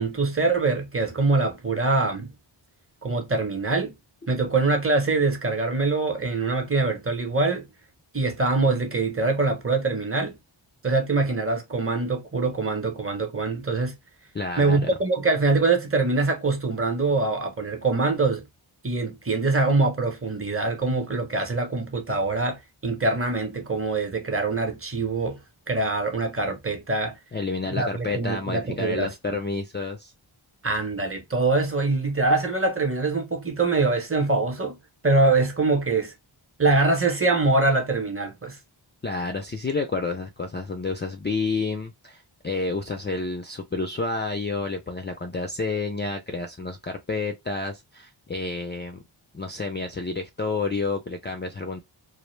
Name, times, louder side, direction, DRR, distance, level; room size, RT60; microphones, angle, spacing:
voice 1, 0.0-2.3 3.0-4.0 4.3-7.7 8.1-10.4 10.8-14.0 14.6-18.5 18.8-25.4 25.7-27.2 27.7-29.1 30.6-34.8 35.0-36.1 36.6-38.6, right 3 dB, 25° right, 0.8 m, -24 dB
voice 2, 14.3-14.9 27.3-30.1 39.0-49.0 49.3-51.8, left 3 dB, 25° left, 0.3 m, -30 dB
2.1 x 2.1 x 3.1 m
wide cardioid pair, 50°, 49 cm